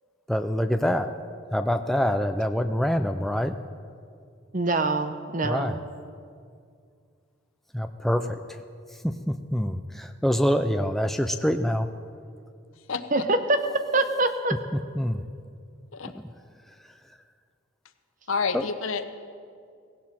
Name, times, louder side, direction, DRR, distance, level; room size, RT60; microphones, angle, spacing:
voice 1, 0.3-1.1 1.5-3.6 5.4-5.8 7.7-8.6 8.9-11.9 14.9-15.2 18.5-18.6, equal, ahead, 7 dB, 0.4 m, -25 dB
voice 2, 4.5-5.8 13.1-13.6 13.9-14.5, right 2 dB, 40° right, 8 dB, 0.9 m, -24 dB
voice 3, 12.9-13.2 15.9-16.1 18.3-19.0, left 5 dB, 85° left, 9 dB, 0.9 m, -29 dB
17.0 x 16.5 x 4.3 m, 2.3 s
head